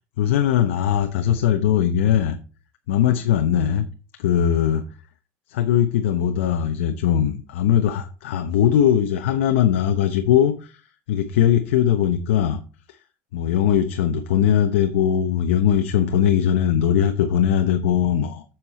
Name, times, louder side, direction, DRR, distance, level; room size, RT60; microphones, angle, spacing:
voice 1, 0.2-2.4 2.9-3.8 4.2-4.9 5.5-10.8 11.1-12.6 13.3-18.4, left 9 dB, 85° left, 7 dB, 1.0 m, -20 dB
7.9 x 7.5 x 4.3 m, 0.34 s
supercardioid pair, 110°, 7 cm